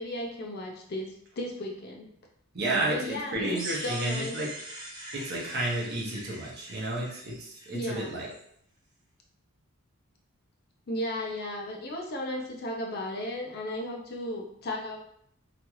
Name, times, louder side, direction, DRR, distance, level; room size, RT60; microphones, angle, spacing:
voice 1, 0.0-2.1 2.9-4.3 7.7-8.1 10.9-15.0, left 1 dB, 45° left, 1 dB, 0.5 m, -35 dB
voice 2, 2.5-4.5 5.1-8.3, right 1 dB, 50° right, -3 dB, 0.8 m, -31 dB
sound 1, 3.5-8.4, right 1 dB, 20° right, 0.5 m, -42 dB
2.9 x 2.4 x 3.0 m, 0.69 s
head